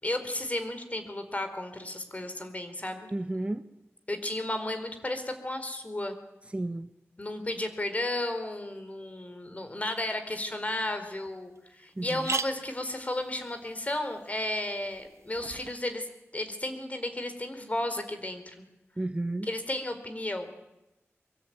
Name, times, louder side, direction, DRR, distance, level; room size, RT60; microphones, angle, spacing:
voice 1, 0.0-3.1 4.1-6.1 7.2-16.1 16.3-18.6 19.4-20.5, left 1 dB, 30° left, 8 dB, 4.1 m, -33 dB
voice 2, 3.1-3.6 6.5-6.9 12.0-12.3 19.0-19.5, right 1 dB, 25° right, 10 dB, 1.2 m, -32 dB
sound 1, 10.7-10.8 11.2-11.3 11.6-11.7 12.0-15.8, right 4 dB, 80° right, 1.2 m, -40 dB
23.5 x 23.5 x 9.5 m, 0.95 s
wide cardioid pair, 85°, 5 cm